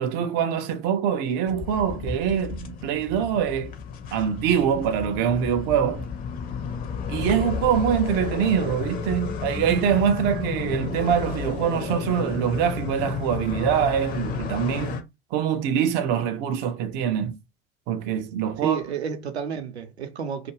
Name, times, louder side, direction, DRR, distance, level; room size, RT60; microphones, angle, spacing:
voice 1, 0.0-3.7 4.1-6.1 7.1-15.0 15.3-17.4 17.9-18.8, right 8 dB, 30° right, 0.4 m, -24 dB
sound 1, 1.5-15.0, left 6 dB, 25° left, 0.6 m, -32 dB
voice 2, 18.6-20.5, right 7 dB, 75° right, 0.7 m, -30 dB
2.4 x 2.2 x 3.1 m
figure-of-eight pair, 85°, 33 cm